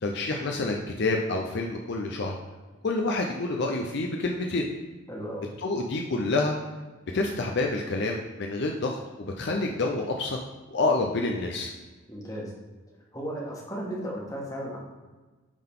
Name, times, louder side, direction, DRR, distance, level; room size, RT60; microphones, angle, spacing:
voice 1, 0.0-2.4 2.8-4.7 5.6-6.5 7.1-10.4 10.7-11.7, left 2 dB, 55° left, 1 dB, 0.5 m, -28 dB
voice 2, 5.1-5.5 12.1-12.5 13.1-14.8, equal, 15° left, -3 dB, 1.5 m, -35 dB
9.8 x 3.8 x 3.7 m, 1.3 s
head